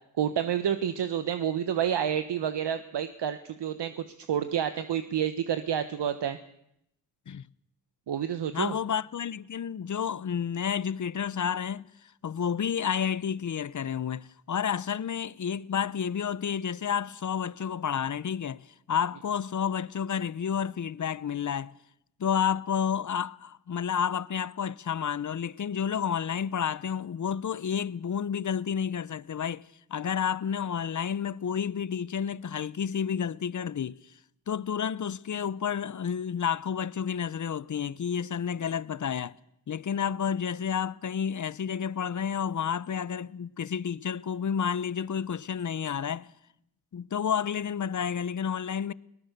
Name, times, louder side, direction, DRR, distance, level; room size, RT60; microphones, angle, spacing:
voice 1, 0.2-6.4 8.1-8.7, right 9 dB, 70° right, 1.2 m, -29 dB
voice 2, 8.5-11.9 12.2-21.7 22.2-29.6 29.9-34.0 34.5-39.3 39.7-46.3 46.9-48.9, left 8 dB, 45° left, 0.8 m, -30 dB
22.5 x 19.0 x 6.7 m
cardioid pair, 55°, 43 cm